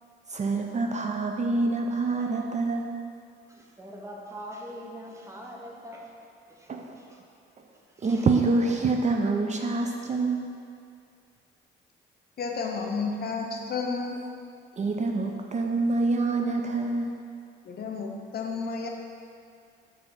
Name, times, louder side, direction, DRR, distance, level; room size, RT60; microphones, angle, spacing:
voice 1, 0.3-3.0 6.7-7.0 7.6-7.7 8.0-10.6 14.8-17.1, right 3 dB, 35° right, 2 dB, 0.5 m, -26 dB
voice 2, 3.5-6.1 6.5-7.2 7.7-8.3, equal, 15° right, -2 dB, 1.0 m, -43 dB
voice 3, 12.4-14.1 17.6-18.9, left 4 dB, 50° left, 2 dB, 0.7 m, -31 dB
5.6 x 3.4 x 5.5 m, 2.3 s
cardioid pair, 90°, 20 cm